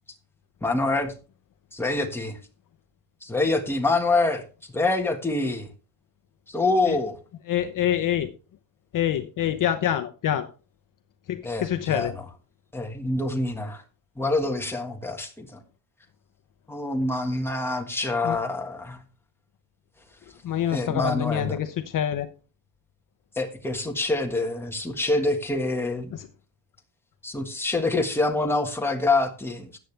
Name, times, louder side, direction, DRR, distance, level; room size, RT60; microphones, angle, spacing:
voice 1, 0.6-1.1 1.7-2.4 3.2-5.7 6.5-7.2 11.4-12.2 12.7-13.8 14.2-15.6 16.7-19.0 20.7-21.6 23.3-26.1 27.2-29.8, left 2 dB, 5° left, 2 dB, 1.5 m, -26 dB
voice 2, 7.5-8.3 8.9-10.5 11.3-12.1 18.2-18.4 20.4-22.3 26.1-26.3, left 10 dB, 45° left, 9 dB, 0.8 m, -26 dB
14.0 x 9.2 x 3.3 m, 0.34 s
cardioid pair, 170°, 43 cm